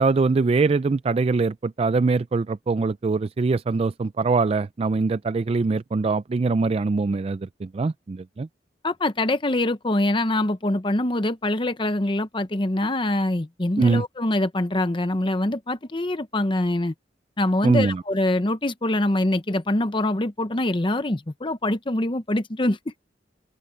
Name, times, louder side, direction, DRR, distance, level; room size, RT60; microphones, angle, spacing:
voice 1, 0.0-8.5 13.8-14.0 17.6-18.0, right 4 dB, 35° right, 0.3 m, -23 dB
voice 2, 8.8-16.9 17.4-22.9, left 1 dB, 30° left, 0.9 m, -24 dB
open air
head